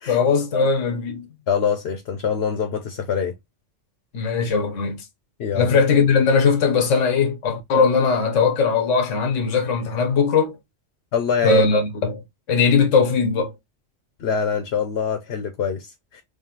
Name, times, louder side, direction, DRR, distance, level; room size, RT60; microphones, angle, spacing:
voice 1, 0.1-1.3 4.1-5.0 5.5-10.6 11.4-12.2 12.5-13.5, left 5 dB, 90° left, 1.2 m, -19 dB
voice 2, 1.5-3.3 5.4-5.8 11.1-11.7 14.2-16.2, left 7 dB, 65° left, 0.9 m, -24 dB
3.7 x 3.1 x 2.8 m
omnidirectional pair, 1.2 m